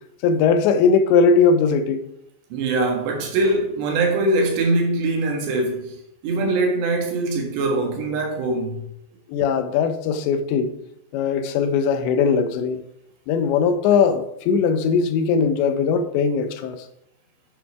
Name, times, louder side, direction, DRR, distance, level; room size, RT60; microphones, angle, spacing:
voice 1, 0.2-2.0 9.3-10.7 11.1-12.8 13.3-16.8, left 5 dB, 85° left, 3.1 m, -19 dB
voice 2, 2.5-8.9, right 2 dB, 75° right, 4.0 m, -22 dB
9.5 x 8.2 x 4.8 m
omnidirectional pair, 5.1 m